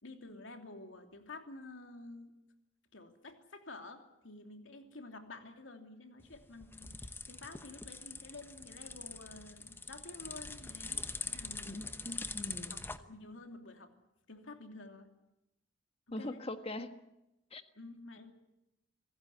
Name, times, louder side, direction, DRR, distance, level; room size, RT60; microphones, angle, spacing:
voice 1, 0.0-2.4 2.9-12.0 12.7-13.9 14.3-15.1 16.1-16.4 17.7-18.3, left 2 dB, 80° left, 5 dB, 2.9 m, -50 dB
sound 1, 6.2-13.0, left 3 dB, 10° left, 1.0 m, -43 dB
voice 2, 11.7-12.7 16.1-17.0 17.5-17.6, left 1 dB, 30° left, 8 dB, 1.5 m, -41 dB
26.5 x 16.0 x 9.7 m, 0.91 s
head